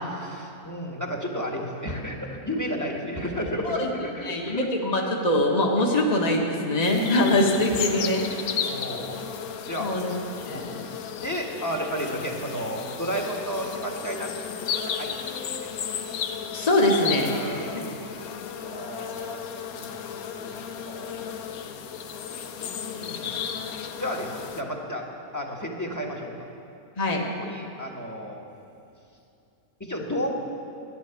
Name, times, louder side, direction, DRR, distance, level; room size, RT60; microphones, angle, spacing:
voice 1, 0.1-4.7 5.8-5.9 6.9-7.4 7.7-7.8 8.2-9.2 9.6-9.9 10.5-10.6 11.1-14.3 14.6-15.1 15.6-15.7 16.1-16.2 16.5-16.7 17.2-17.9 18.6-19.4 19.7-20.1 20.4-20.5 20.8-21.4 22.6-23.4 24.0-25.0 25.3-26.5 27.4-28.4 29.8-30.3, equal, 10° left, 0 dB, 1.5 m, -33 dB
voice 2, 4.2-8.2 9.8-10.1 10.4-10.9 16.5-17.8 27.0-27.2, left 1 dB, 30° left, 0 dB, 1.5 m, -23 dB
sound 1, 6.8-24.6, left 7 dB, 75° left, 1.2 m, -34 dB
15.5 x 11.0 x 7.2 m, 2.7 s
omnidirectional pair, 1.5 m